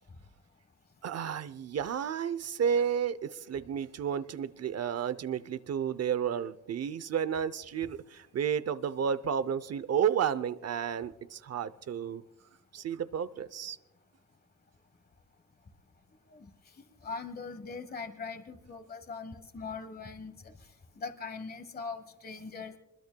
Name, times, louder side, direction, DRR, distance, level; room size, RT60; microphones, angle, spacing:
voice 1, 1.0-12.2 12.7-13.8, right 8 dB, 60° right, 0.7 m, -32 dB
voice 2, 17.0-20.5 21.0-22.7, left 4 dB, 30° left, 1.4 m, -41 dB
27.5 x 21.5 x 2.3 m
wide cardioid pair, 150°, 29 cm